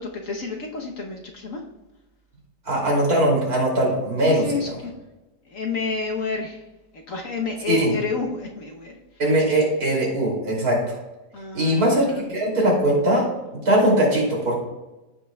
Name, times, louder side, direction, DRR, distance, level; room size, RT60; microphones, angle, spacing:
voice 1, 0.0-1.6 4.3-4.9 5.5-6.6 7.1-9.0 11.3-12.2, left 4 dB, 55° left, 1 dB, 1.3 m, -30 dB
voice 2, 2.6-4.8 7.6-7.9 9.2-11.0 11.5-13.2 13.6-14.6, right 1 dB, 60° right, -3 dB, 3.3 m, -20 dB
14.5 x 5.8 x 2.3 m, 1.0 s
omnidirectional pair, 1.8 m